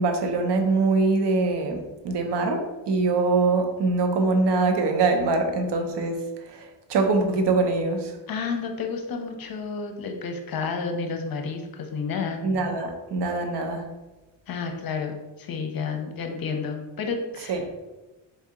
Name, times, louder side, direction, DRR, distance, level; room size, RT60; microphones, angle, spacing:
voice 1, 0.0-8.2 12.4-13.9 17.5-17.6, right 3 dB, 60° right, 5 dB, 0.8 m, -23 dB
voice 2, 8.3-12.4 14.5-17.7, left 5 dB, 50° left, 4 dB, 0.7 m, -31 dB
4.2 x 2.8 x 3.6 m, 1.1 s
cardioid pair, 120°, 47 cm